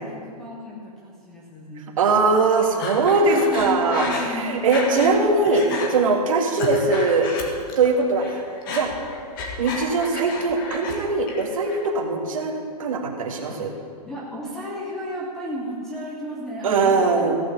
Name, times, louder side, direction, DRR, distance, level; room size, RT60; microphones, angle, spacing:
voice 1, 0.0-1.9 3.3-5.1 13.5-17.4, equal, ahead, -5 dB, 0.4 m, -33 dB
voice 2, 2.0-7.3 7.8-8.4 8.7-8.9 9.6-13.7 16.6-17.4, right 3 dB, 55° right, 2 dB, 1.8 m, -21 dB
Breathing, 2.8-5.2 5.5-5.9 6.4-7.9 8.2-11.0 11.3-11.9, left 3 dB, 30° left, 1.5 m, -31 dB
15.5 x 6.2 x 7.0 m, 2.2 s
hypercardioid pair, 175°, 21 cm